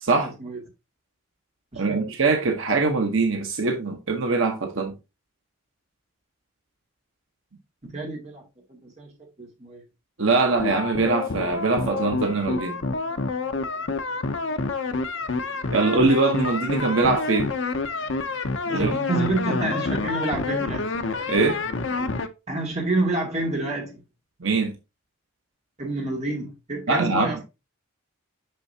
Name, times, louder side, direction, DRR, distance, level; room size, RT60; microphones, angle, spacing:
voice 1, 0.2-0.6 1.7-2.1 7.8-8.4 8.7-9.8 18.7-20.9 22.5-24.0 25.8-27.4, right 2 dB, 35° right, 2.3 m, -28 dB
voice 2, 1.7-5.0 10.2-12.8 15.7-17.5 18.7-18.9 21.3-21.6 24.4-24.8 26.9-27.3, right 3 dB, 75° right, 1.1 m, -22 dB
sound 1, 10.4-22.3, left 3 dB, 65° left, 0.7 m, -28 dB
6.7 x 5.7 x 2.8 m
head